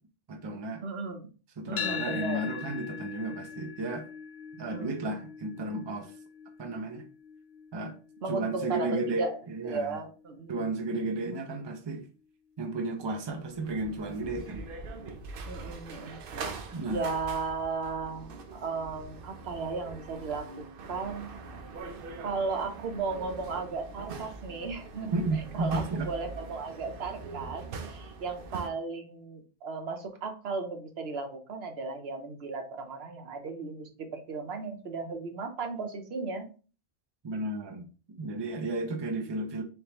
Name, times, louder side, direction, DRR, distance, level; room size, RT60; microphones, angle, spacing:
voice 1, 0.3-0.8 1.6-4.1 4.6-6.1 6.6-7.1 7.7-8.0 8.3-10.0 10.5-12.1 12.6-14.6 16.7-17.1 25.1-26.1 37.2-39.6, right 2 dB, 35° right, 0.5 m, -33 dB
voice 2, 0.8-1.3 1.7-2.4 4.7-4.9 8.2-9.4 9.6-11.2 15.5-21.3 22.2-25.2 25.5-36.5, right 4 dB, 85° right, 1.0 m, -35 dB
sound 1, 1.8-9.9, left 7 dB, 75° left, 0.8 m, -41 dB
sound 2, 13.1-28.7, right 4 dB, 65° right, 0.8 m, -43 dB
3.6 x 3.3 x 2.9 m
omnidirectional pair, 1.0 m